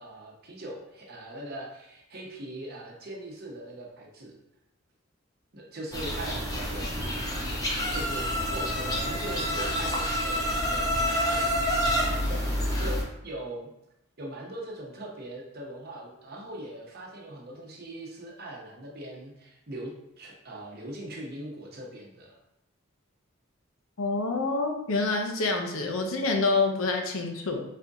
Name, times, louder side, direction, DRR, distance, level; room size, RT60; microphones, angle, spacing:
voice 1, 0.0-4.3 5.5-7.0 7.9-11.6 12.3-13.7 14.2-22.3, right 1 dB, 45° right, -2 dB, 0.8 m, -40 dB
sound 1, 5.9-13.0, equal, 15° left, 0.7 m, -28 dB
voice 2, 24.0-27.6, left 3 dB, 70° left, 3 dB, 0.6 m, -27 dB
4.2 x 2.7 x 3.5 m, 0.85 s
head